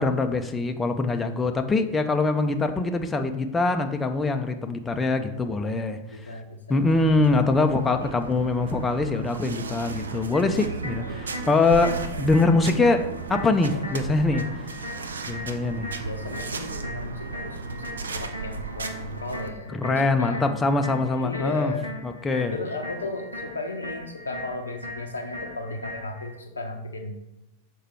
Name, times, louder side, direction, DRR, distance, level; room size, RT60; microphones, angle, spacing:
voice 1, 0.0-6.3 6.7-14.5 15.3-15.9 19.7-21.7 22.0-22.5, left 3 dB, 15° left, 5 dB, 0.5 m, -23 dB
voice 2, 6.1-6.8 16.0-20.4 21.0-21.9 22.5-27.2, left 2 dB, 75° left, 3 dB, 0.7 m, -35 dB
sound 1, 6.9-19.5, right 4 dB, 70° right, 0.6 m, -35 dB
sound 2, 10.3-26.3, left 1 dB, 85° right, 1.5 m, -40 dB
6.6 x 4.5 x 4.5 m, 0.95 s
figure-of-eight pair, 90°, 0 cm